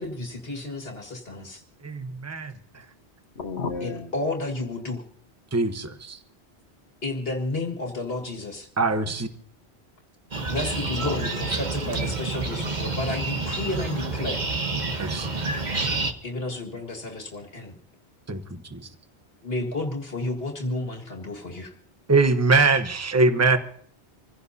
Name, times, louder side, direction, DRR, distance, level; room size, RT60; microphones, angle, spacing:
voice 1, 0.0-1.6 3.8-5.0 7.0-8.7 10.5-14.4 16.2-17.8 19.4-21.7, left 2 dB, 65° left, 2 dB, 2.1 m, -31 dB
voice 2, 1.8-2.9 5.5-6.2 8.8-9.3 15.0-15.7 18.3-18.9 22.1-23.6, right 3 dB, 15° right, 9 dB, 0.9 m, -23 dB
voice 3, 3.3-4.1 10.9-11.4 23.4-23.6, left 4 dB, 85° left, 9 dB, 1.4 m, -33 dB
sound 1, 10.3-16.1, right 3 dB, 45° right, 1.3 m, -28 dB
26.5 x 16.0 x 2.7 m, 0.62 s
omnidirectional pair, 1.1 m